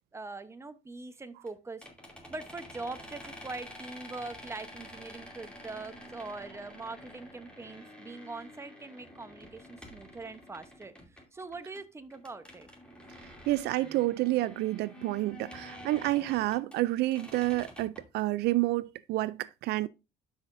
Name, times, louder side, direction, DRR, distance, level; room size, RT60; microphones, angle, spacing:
voice 1, 0.1-1.9 2.3-12.7, right 3 dB, 15° right, 0.8 m, -42 dB
sound 1, 1.5-1.6 1.8-11.8 12.1-16.8 17.1-18.2, equal, 5° left, 2.7 m, -49 dB
voice 2, 13.5-19.9, right 17 dB, 75° right, 0.4 m, -29 dB
12.0 x 5.7 x 2.6 m
cardioid pair, 110°, 17 cm